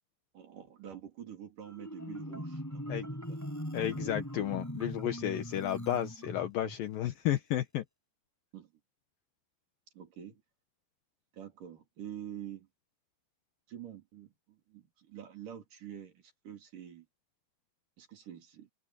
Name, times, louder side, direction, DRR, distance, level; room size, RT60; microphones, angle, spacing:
voice 1, 0.3-3.4 8.5-8.7 9.9-10.4 11.3-12.7 13.7-17.1 18.0-18.7, right 10 dB, 45° right, 4.9 m, -47 dB
Marimba xylophone, 1.6-6.8, equal, 5° left, 6.8 m, -40 dB
voice 2, 3.7-7.8, left 12 dB, 75° left, 2.1 m, -32 dB
omnidirectional pair, 5.7 m